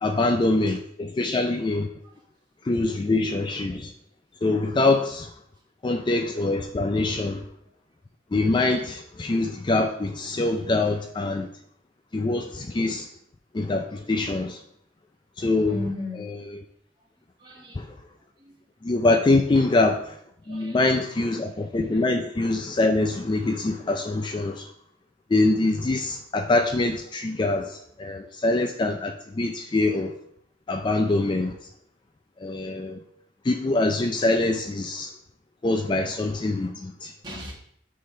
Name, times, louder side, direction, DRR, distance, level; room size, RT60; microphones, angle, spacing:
voice 1, 0.0-1.9 2.6-3.9 4.4-5.3 5.8-7.4 8.3-11.5 12.1-13.1 13.5-14.6 15.4-15.9 16.1-16.4 17.8-17.9 18.8-20.2 20.5-24.7 25.3-30.1 30.7-31.6 32.4-33.0 33.4-35.1 35.6-37.1, left 2 dB, 25° left, 5 dB, 0.3 m, -24 dB
voice 2, 15.7-16.3 17.4-17.8 18.4-18.6 19.6-19.7 20.4-20.8 37.2-37.5, left 1 dB, 25° right, -3 dB, 1.7 m, -36 dB
6.6 x 3.8 x 4.7 m, 0.69 s
head